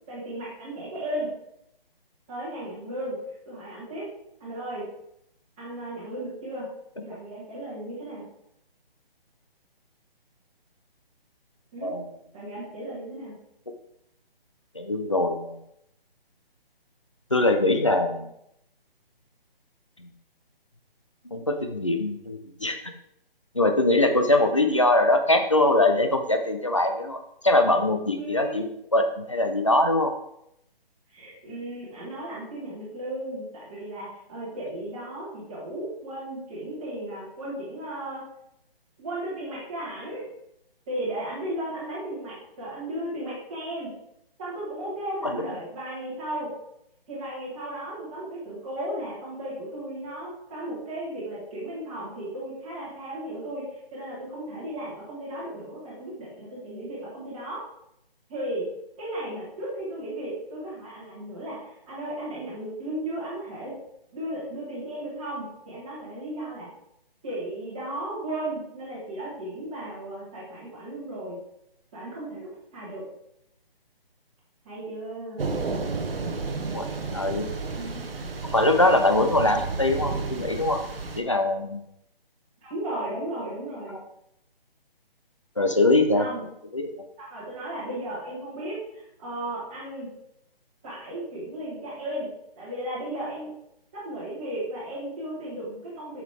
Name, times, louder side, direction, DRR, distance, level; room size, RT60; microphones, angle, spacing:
voice 1, 0.1-1.3 2.3-4.0 4.4-4.8 5.6-6.7 7.0-8.2 11.7-11.9 12.3-13.4 28.2-28.7 31.1-38.2 39.0-40.3 40.9-43.9 44.4-46.5 47.1-57.6 58.3-58.7 59.0-63.7 64.1-66.7 67.2-71.4 71.9-73.0 74.6-75.5 77.7-78.1 82.6-84.0 86.1-86.4 87.2-90.1 90.8-92.3 92.5-93.5 93.9-96.2, right 1 dB, 10° right, -11 dB, 1.5 m, -35 dB
voice 2, 14.7-15.6 17.3-18.3 20.0-20.1 21.3-22.8 23.5-28.7 28.9-30.1 45.2-45.4 76.7-77.5 78.4-80.8 81.1-81.8 83.9-84.0 85.6-86.3 86.7-86.9, left 2 dB, 30° left, 6 dB, 0.5 m, -22 dB
Thunder / Rain, 75.4-81.2, right 4 dB, 70° right, 1.0 m, -32 dB
7.1 x 6.2 x 3.5 m, 0.78 s
hypercardioid pair, 180°, 30 cm